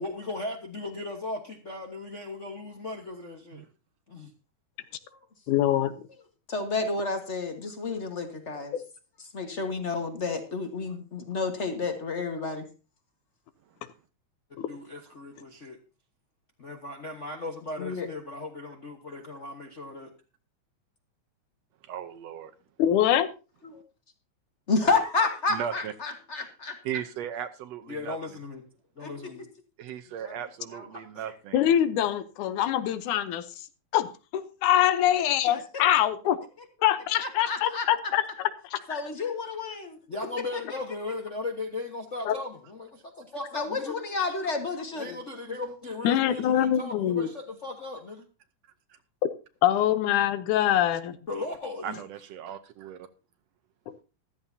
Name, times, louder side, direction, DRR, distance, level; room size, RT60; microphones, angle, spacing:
voice 1, 0.0-3.6 4.1-4.3 14.5-15.8 16.6-20.1 27.9-28.6 29.0-29.5 31.1-31.3 40.1-44.0 44.9-48.3 51.3-52.0, left 2 dB, 50° left, 0.9 m, -37 dB
voice 2, 5.5-5.9 14.6-14.7 22.8-23.3 31.5-33.4 33.9-36.4 36.8-38.8 42.3-42.4 46.0-47.3 49.6-51.2 53.9-54.0, left 11 dB, 90° left, 2.4 m, -24 dB
voice 3, 6.5-8.7 9.3-12.6 17.8-18.1 24.7-26.8 29.0-29.1 30.2-30.4 30.7-30.9 37.2-37.8 38.9-40.0 40.5-40.6 43.5-45.2, left 4 dB, 35° left, 1.2 m, -30 dB
voice 4, 21.9-22.5 25.5-25.9 26.8-28.2 29.8-31.6 51.8-53.1, right 9 dB, 70° right, 1.8 m, -37 dB
14.5 x 13.0 x 2.7 m
omnidirectional pair, 3.4 m